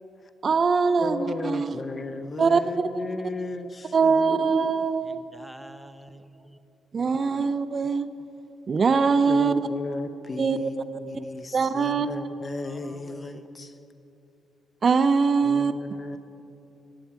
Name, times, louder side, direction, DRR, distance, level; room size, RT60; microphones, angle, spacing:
voice 1, 0.4-1.8 2.4-2.9 3.9-5.2 6.9-8.1 8.7-9.6 10.4-11.0 11.5-12.1 14.8-15.7, right 5 dB, 40° right, 13 dB, 0.4 m, -22 dB
voice 2, 1.0-4.3 7.4-7.5 9.3-13.7 15.4-16.2, left 3 dB, 30° left, 10 dB, 0.7 m, -35 dB
voice 3, 5.1-6.6 12.6-13.6, equal, ahead, 10 dB, 0.7 m, -48 dB
15.5 x 10.0 x 4.7 m, 2.7 s
cardioid pair, 90°, 0 cm